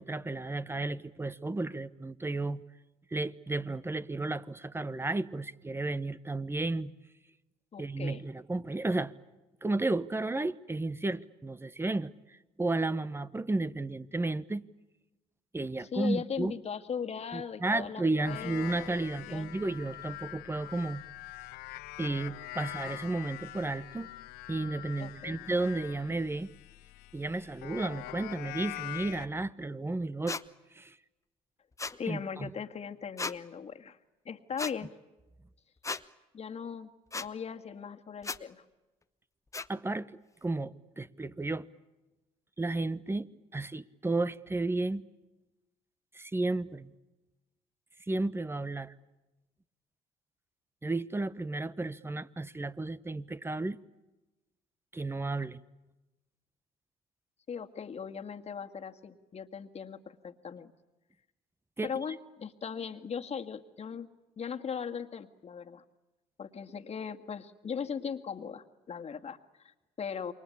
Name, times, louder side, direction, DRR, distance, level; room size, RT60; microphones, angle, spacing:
voice 1, 0.0-2.6 3.1-6.9 7.8-9.1 9.6-14.6 15.5-16.5 17.3-21.0 22.0-24.1 24.5-26.5 27.1-30.4 30.7-31.0 32.1-32.5 39.7-40.1 40.4-41.7 42.6-45.0 46.1-46.9 48.1-48.9 50.8-53.8 54.9-55.6 61.8-61.9, right 2 dB, 15° right, 1.1 m, -33 dB
voice 2, 7.7-8.2 15.8-19.5 25.0-25.4 32.0-34.0 34.3-34.9 36.3-38.6 57.5-60.7 61.8-64.1 64.4-65.8 66.4-70.3, left 6 dB, 40° left, 2.0 m, -39 dB
sound 1, 18.2-29.3, left 17 dB, 80° left, 1.0 m, -44 dB
sound 2, 30.3-30.4 31.8-32.0 33.2-33.4 34.6-34.7 35.8-36.0 37.1-37.3 38.2-38.4 39.5-39.7, left 3 dB, 20° left, 1.0 m, -35 dB
28.5 x 24.0 x 8.6 m
supercardioid pair, 70°, 16 cm